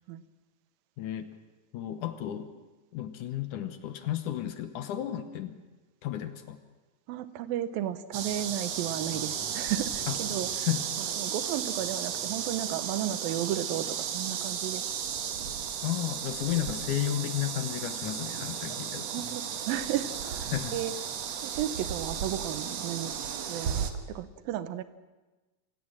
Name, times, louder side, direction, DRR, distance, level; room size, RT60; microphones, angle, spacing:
voice 1, 1.0-1.3 1.7-2.5 2.9-5.6 6.0-6.6 10.1-10.2 10.6-10.8 15.8-19.1 20.5-20.8, left 12 dB, 70° left, 9 dB, 2.2 m, -33 dB
voice 2, 7.1-10.5 11.0-14.8 19.1-20.9 21.4-23.1 23.5-24.8, right 11 dB, 80° right, 13 dB, 2.6 m, -34 dB
sound 1, 8.1-23.9, right 8 dB, 60° right, 2.1 m, -34 dB
26.0 x 16.0 x 7.5 m, 1.2 s
omnidirectional pair, 4.2 m